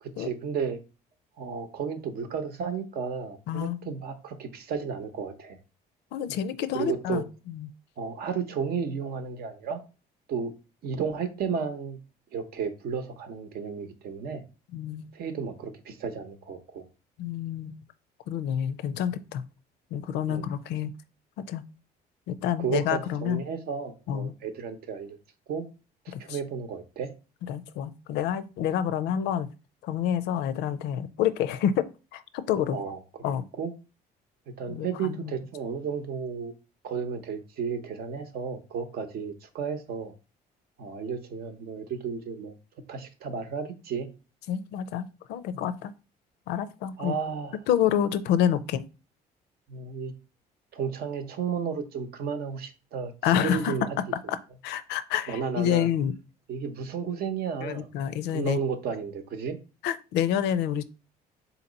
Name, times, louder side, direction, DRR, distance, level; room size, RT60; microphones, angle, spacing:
voice 1, 0.0-0.8 1.4-5.6 6.7-7.2 8.0-9.8 10.3-10.5 10.8-12.0 12.3-14.4 15.1-16.8 20.3-20.5 22.6-25.2 25.5-25.7 26.0-27.1 32.7-33.7 34.6-36.5 36.8-40.1 40.8-42.5 42.9-44.1 47.0-47.6 49.7-50.1 50.7-54.0 55.3-55.9 56.5-57.9 58.3-59.6, right 6 dB, 65° right, 0.8 m, -33 dB
voice 2, 3.5-3.9 6.1-7.7 14.7-15.1 17.2-17.7 18.3-19.4 19.9-20.9 21.5-21.6 22.3-23.4 24.1-24.3 26.1-26.4 27.5-29.5 29.8-32.8 33.2-33.4 34.7-35.3 44.5-45.9 46.5-47.1 47.7-48.8 53.2-53.7 54.3-54.4 54.6-56.1 57.6-58.6 59.8-60.8, left 9 dB, 85° left, 0.5 m, -28 dB
4.0 x 2.9 x 3.9 m
cardioid pair, 110°, 17 cm